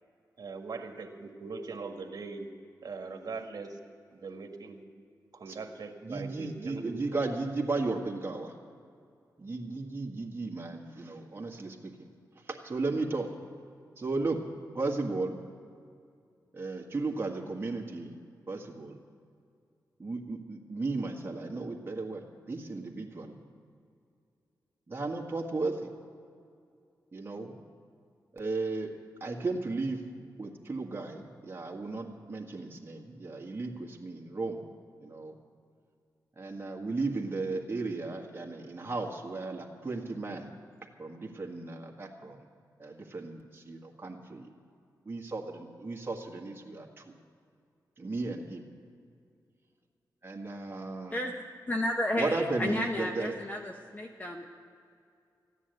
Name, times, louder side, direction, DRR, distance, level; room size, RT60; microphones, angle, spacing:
voice 1, 0.4-2.5 2.8-3.8 4.2-4.8 5.4-7.2, right 4 dB, 65° right, 4 dB, 1.6 m, -41 dB
voice 2, 6.0-8.5 9.4-11.9 12.5-13.3 14.0-14.4 14.7-15.4 16.5-18.1 18.5-19.0 20.0-23.4 24.9-25.9 27.1-27.6 28.3-28.9 29.2-30.0 30.4-34.6 35.0-35.3 36.4-40.5 41.0-42.4 42.8-44.5 45.1-47.1 48.0-48.7 50.2-51.2 52.2-53.3, right 3 dB, 30° right, 0 dB, 1.8 m, -35 dB
voice 3, 51.7-54.4, left 1 dB, 25° left, 2 dB, 1.0 m, -32 dB
14.5 x 9.9 x 8.1 m, 2.4 s
cardioid pair, 80°, 7 cm